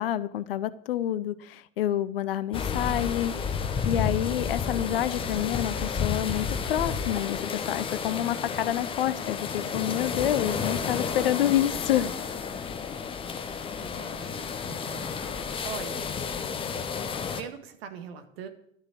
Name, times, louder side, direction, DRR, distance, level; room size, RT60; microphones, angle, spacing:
voice 1, 0.0-12.1, left 12 dB, 45° left, 0.6 m, -28 dB
sound 1, 2.5-17.4, left 6 dB, 15° left, 0.8 m, -31 dB
voice 2, 13.8-15.3 15.6-16.1 17.4-18.5, right 8 dB, 50° right, 1.8 m, -41 dB
12.0 x 6.5 x 8.3 m
figure-of-eight pair, 95°, 39 cm